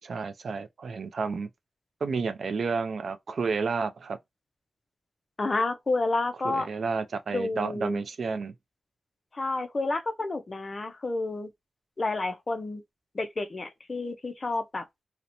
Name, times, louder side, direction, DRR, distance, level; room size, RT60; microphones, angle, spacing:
voice 1, 0.0-1.5 2.0-4.2 6.4-8.5, right 4 dB, 60° right, 0.3 m, -31 dB
voice 2, 5.4-6.7 7.3-8.0 9.3-11.5 12.0-12.8 13.1-14.9, left 2 dB, 30° left, 0.4 m, -30 dB
2.7 x 2.1 x 2.5 m
wide cardioid pair, 180°, 0 cm